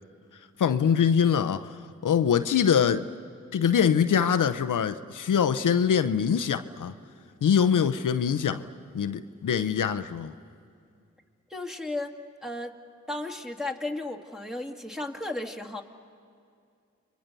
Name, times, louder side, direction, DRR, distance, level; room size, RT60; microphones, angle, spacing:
voice 1, 0.6-1.8 2.0-3.1 3.5-6.9 7.4-8.7 8.9-10.3, left 7 dB, 85° left, 0.7 m, -23 dB
voice 2, 11.5-12.1 12.4-12.7 13.1-15.8, left 2 dB, ahead, 2.2 m, -34 dB
29.0 x 23.0 x 6.8 m
cardioid pair, 40°, 31 cm